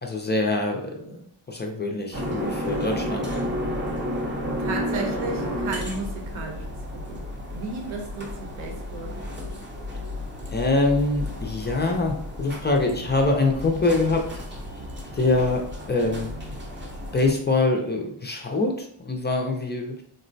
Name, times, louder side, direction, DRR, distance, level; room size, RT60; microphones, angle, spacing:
voice 1, 0.0-3.2 10.5-14.3 15.1-16.3 17.1-20.0, left 2 dB, 25° left, 2 dB, 0.3 m, -24 dB
sound 1, 2.1-17.3, left 1 dB, 25° right, 0.6 m, -32 dB
voice 2, 4.6-7.3 7.5-9.5, right 2 dB, 70° right, 1 dB, 0.8 m, -34 dB
3.7 x 2.0 x 2.6 m, 0.65 s
cardioid pair, 100°, 50 cm